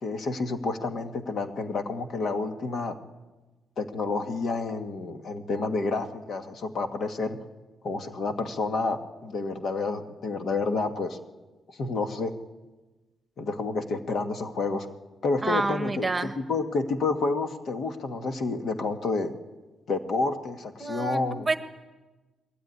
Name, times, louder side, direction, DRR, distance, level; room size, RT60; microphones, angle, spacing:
voice 1, 0.0-2.9 3.8-7.4 7.8-11.2 11.7-12.3 13.4-14.9 15.2-19.3 19.9-21.5, left 3 dB, 60° left, 6 dB, 1.7 m, -29 dB
voice 2, 15.4-16.3 20.8-21.2 21.5-21.6, right 3 dB, 20° right, 8 dB, 1.4 m, -28 dB
21.5 x 16.0 x 9.6 m, 1.2 s
cardioid pair, 120°, 0 cm